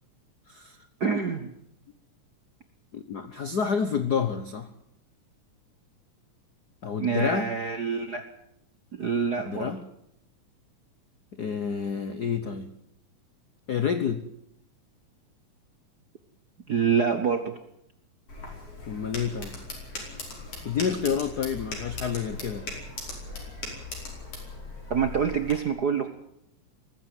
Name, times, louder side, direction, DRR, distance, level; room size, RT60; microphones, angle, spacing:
voice 1, 1.0-1.5 7.0-8.2 8.9-9.7 16.7-17.6 24.9-26.1, right 6 dB, 65° right, 8 dB, 1.0 m, -26 dB
voice 2, 2.9-4.7 6.8-7.5 9.4-9.8 11.4-12.7 13.7-14.2 18.9-19.5 20.6-22.7, left 6 dB, 80° left, 11 dB, 0.9 m, -29 dB
sound 1, 18.3-25.5, left 3 dB, 50° left, 6.1 m, -39 dB
19.5 x 15.5 x 9.7 m, 0.77 s
omnidirectional pair, 3.5 m